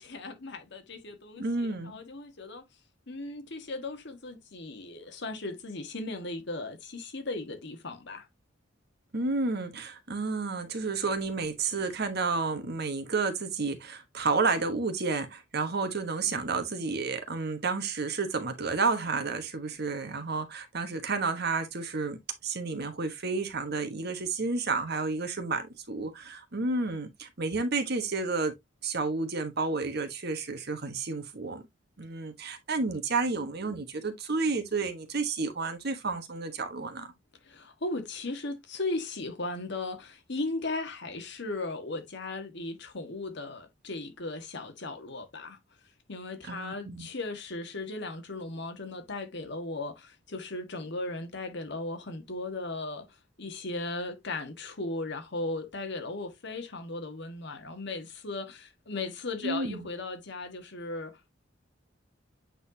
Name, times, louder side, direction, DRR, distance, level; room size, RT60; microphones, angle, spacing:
voice 1, 0.0-2.6 3.1-8.3 37.4-45.6 46.1-53.1 53.4-61.4, left 2 dB, 60° left, 1.5 m, -37 dB
voice 2, 1.4-1.9 9.1-28.5 28.8-31.6 32.0-37.1 46.5-47.1 59.4-59.9, right 4 dB, 55° right, 1.2 m, -31 dB
8.5 x 4.0 x 2.7 m
head